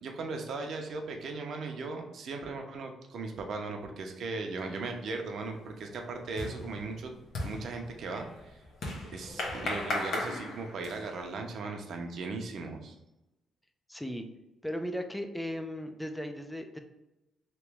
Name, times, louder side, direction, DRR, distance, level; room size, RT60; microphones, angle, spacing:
voice 1, 0.0-7.1 7.4-8.6 9.1-13.0, right 3 dB, 55° right, 3 dB, 0.6 m, -38 dB
sound 1, 4.7-5.1 5.4-11.2, left 2 dB, 65° left, 0.9 m, -37 dB
voice 2, 13.9-14.3 14.6-16.8, equal, 5° left, 6 dB, 0.3 m, -36 dB
3.0 x 2.9 x 3.4 m, 0.97 s
cardioid pair, 135°, 0 cm